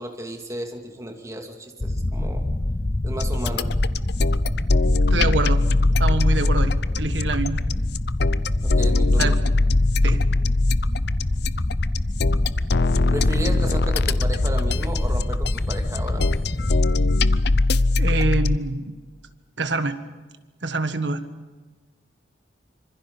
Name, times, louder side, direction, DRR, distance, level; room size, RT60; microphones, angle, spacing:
voice 1, 0.0-2.4 3.0-3.7 8.6-9.3 13.1-16.4, right 1 dB, 20° right, 3 dB, 2.6 m, -33 dB
sound 1, 1.8-17.6, left 1 dB, 30° left, 0.7 m, -25 dB
sound 2, 3.2-18.6, left 2 dB, 65° left, 0.7 m, -21 dB
voice 2, 5.1-5.6 6.0-7.6 9.2-9.4 10.0-10.2 18.0-19.0 19.6-20.0 20.6-21.2, right 3 dB, 75° right, 10 dB, 1.6 m, -25 dB
26.0 x 25.5 x 5.6 m, 1.3 s
head